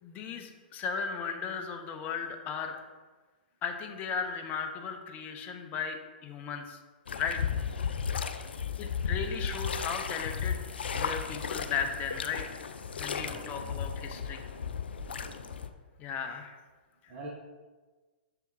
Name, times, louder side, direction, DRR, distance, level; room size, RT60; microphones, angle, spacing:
voice 1, 0.0-2.8 3.6-6.8 7.2-7.4 7.7-8.0 8.8-10.6 10.9-12.6 13.0-14.4 16.0-16.6 17.0-17.1, left 6 dB, 30° left, 4 dB, 0.8 m, -36 dB
sound 1, 7.1-15.7, left 6 dB, 80° left, 0.5 m, -34 dB
voice 2, 13.1-13.7 15.2-15.4 17.1-17.3, right 2 dB, 30° right, -3 dB, 1.3 m, -44 dB
6.9 x 3.4 x 4.7 m, 1.3 s
hypercardioid pair, 125°, 6 cm